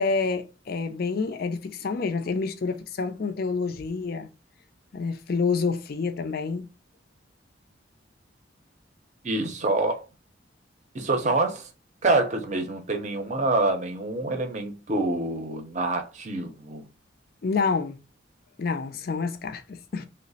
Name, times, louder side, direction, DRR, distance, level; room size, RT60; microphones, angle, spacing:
voice 1, 0.0-4.3 4.9-6.7 17.4-18.0 18.6-20.1, left 4 dB, 50° left, 0.4 m, -28 dB
voice 2, 9.2-10.0 10.9-11.7 12.0-16.9, right 2 dB, 40° right, 0.6 m, -26 dB
3.1 x 2.1 x 3.8 m
head